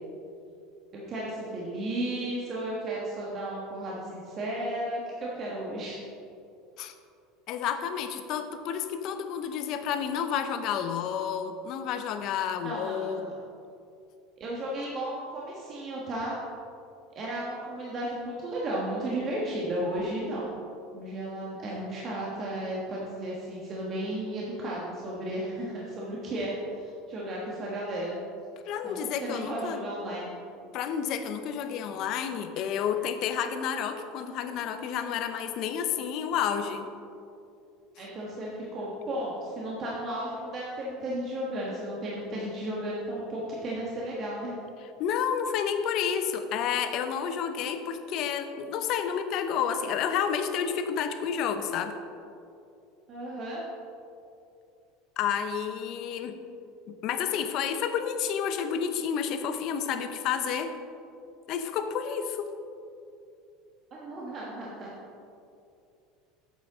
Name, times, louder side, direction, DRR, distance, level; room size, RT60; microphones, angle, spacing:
voice 1, 0.9-6.0 12.6-13.3 14.4-16.4 17.1-20.5 20.9-28.2 28.8-30.3 38.0-44.5 53.1-53.6 63.9-64.9, right 1 dB, 35° right, -4 dB, 1.3 m, -34 dB
voice 2, 7.5-13.2 28.7-29.8 30.7-36.9 45.0-52.0 55.2-56.4 56.9-60.7 61.5-62.5, left 8 dB, 50° left, 8 dB, 0.6 m, -30 dB
8.8 x 7.5 x 3.6 m, 2.6 s
supercardioid pair, 145°, 0 cm